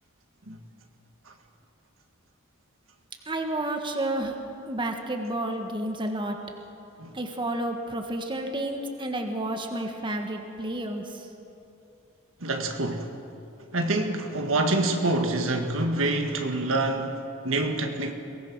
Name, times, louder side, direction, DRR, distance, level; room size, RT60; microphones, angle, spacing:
voice 1, 3.3-4.3 4.7-6.4 7.1-11.3, right 1 dB, 25° right, 4 dB, 1.6 m, -30 dB
voice 2, 12.4-13.1 13.7-18.1, right 2 dB, 75° right, 5 dB, 1.8 m, -26 dB
23.0 x 18.5 x 6.2 m, 2.7 s
head